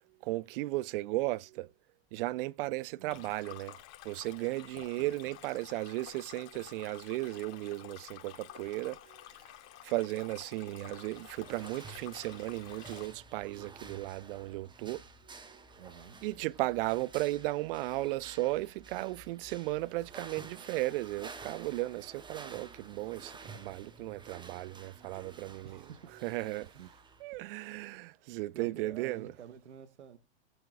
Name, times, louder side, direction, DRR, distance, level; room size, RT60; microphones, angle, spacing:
voice 1, 0.2-1.7 2.1-3.8 4.0-9.2 9.8-15.0 15.5-15.6 16.2-25.8 26.2-26.7 27.2-29.3, right 19 dB, 55° right, 0.6 m, -35 dB
voice 2, 3.0-3.3 4.7-5.1 15.8-16.2 25.6-26.1 26.7-26.9 28.5-30.2, right 8 dB, 85° right, 1.2 m, -50 dB
Stream, 3.1-13.1, left 13 dB, 45° left, 2.6 m, -51 dB
sound 1, 11.1-27.2, right 4 dB, 15° right, 1.2 m, -51 dB
19.0 x 7.8 x 2.3 m
hypercardioid pair, 105°, 34 cm